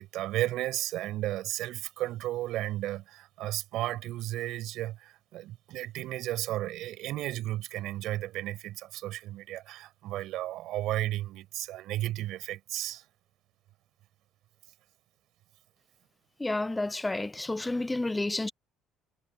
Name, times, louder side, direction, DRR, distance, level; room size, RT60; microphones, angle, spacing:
voice 1, 0.0-13.0, right 15 dB, 75° right, 6.0 m, -34 dB
voice 2, 16.4-18.5, left 2 dB, 10° left, 0.4 m, -30 dB
cardioid pair, 115°, 0 cm